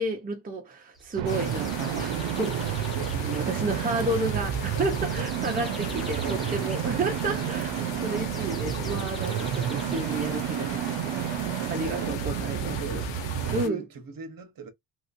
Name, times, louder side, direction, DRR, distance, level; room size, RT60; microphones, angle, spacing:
voice 1, 0.0-13.0 13.5-13.8, right 2 dB, 20° right, 0.6 m, -32 dB
sound 1, 0.9-10.8, right 1 dB, ahead, 0.9 m, -49 dB
sound 2, 1.2-13.6, right 10 dB, 80° right, 0.6 m, -30 dB
sound 3, 1.3-13.7, left 7 dB, 85° left, 1.2 m, -40 dB
voice 2, 2.9-3.9 6.0-6.7 11.7-12.2 12.6-14.7, right 4 dB, 50° right, 1.1 m, -40 dB
3.0 x 2.9 x 2.5 m
wide cardioid pair, 145°, 43 cm